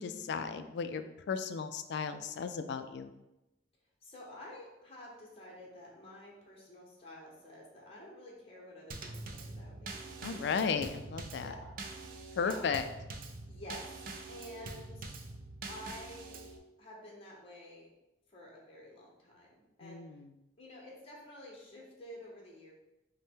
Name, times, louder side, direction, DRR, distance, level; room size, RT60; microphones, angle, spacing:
voice 1, 0.0-3.1 10.2-11.5 12.4-12.9 19.8-20.3, left 6 dB, 65° left, 10 dB, 0.3 m, -35 dB
voice 2, 4.0-10.0 11.4-11.7 12.1-12.6 13.5-13.9 14.3-15.2 15.7-16.4 16.8-17.9 18.3-20.0 20.6-22.7, left 1 dB, 35° left, -2 dB, 0.9 m, -50 dB
Drum kit / Snare drum / Bass drum, 8.9-16.6, right 3 dB, 50° right, 0.4 m, -45 dB
5.3 x 2.1 x 3.6 m, 0.95 s
head